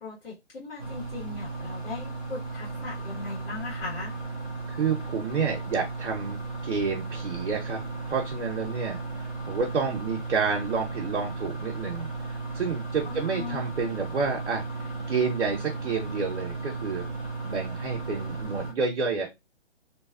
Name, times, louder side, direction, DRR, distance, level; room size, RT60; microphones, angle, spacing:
voice 1, 0.0-4.1 13.0-13.7, left 4 dB, 55° left, -5 dB, 1.4 m, -39 dB
sound 1, 0.8-18.7, right 3 dB, 5° left, 0.4 m, -35 dB
voice 2, 4.7-12.1 12.5-17.1 17.4-19.3, right 5 dB, 75° right, 0 dB, 0.8 m, -30 dB
2.7 x 2.3 x 2.4 m, 0.22 s
figure-of-eight pair, 135°, 34 cm